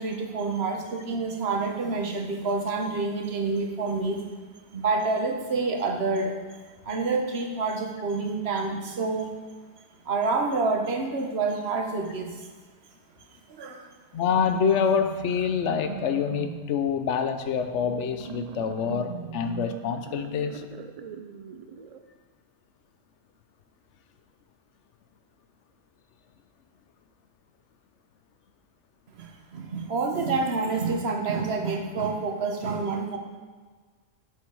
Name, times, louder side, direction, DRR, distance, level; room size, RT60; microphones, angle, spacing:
voice 1, 0.0-4.2 4.7-9.3 10.0-12.5 13.5-13.9 29.1-33.2, right 3 dB, 65° right, 3 dB, 1.2 m, -28 dB
voice 2, 14.1-20.6, left 7 dB, 80° left, 7 dB, 1.0 m, -26 dB
sound 1, 14.1-22.0, right 6 dB, 80° right, 0.3 m, -40 dB
7.0 x 6.6 x 4.7 m, 1.5 s
omnidirectional pair, 1.2 m